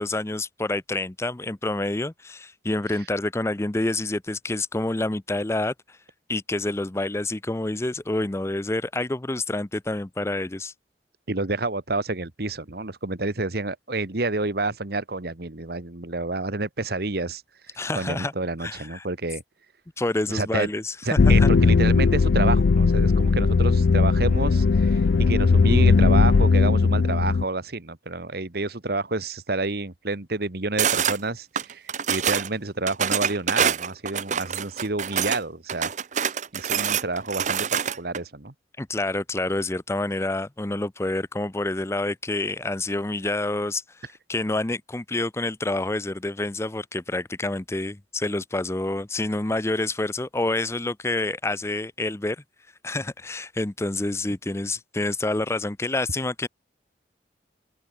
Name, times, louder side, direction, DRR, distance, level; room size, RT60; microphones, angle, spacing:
voice 1, 0.0-6.0 6.3-10.7 17.8-18.3 18.6-19.1 20.0-21.5 38.8-52.4 52.8-56.5, left 2 dB, 15° left, 0.6 m, -28 dB
voice 2, 11.3-17.4 17.9-19.4 20.3-20.7 21.0-35.9 36.5-38.5, right 2 dB, 60° right, 1.6 m, -29 dB
sound 1, 21.2-27.4, left 4 dB, 75° left, 0.5 m, -18 dB
sound 2, 30.8-31.2 31.6-32.5 32.9-35.4 35.7-38.2, right 8 dB, 45° right, 0.8 m, -25 dB
open air
head